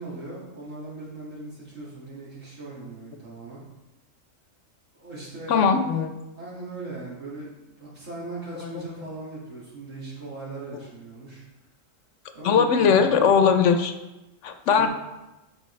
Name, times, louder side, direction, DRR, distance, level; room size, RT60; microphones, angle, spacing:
voice 1, 0.0-3.6 5.0-5.9 6.4-11.4 12.3-13.0 14.8-14.9, right 2 dB, 70° right, -8 dB, 2.5 m, -38 dB
voice 2, 5.5-6.1 8.6-8.7 12.4-13.9 14.4-14.9, left 6 dB, 70° left, 8 dB, 1.0 m, -19 dB
9.8 x 5.1 x 3.2 m, 1.0 s
omnidirectional pair, 1.4 m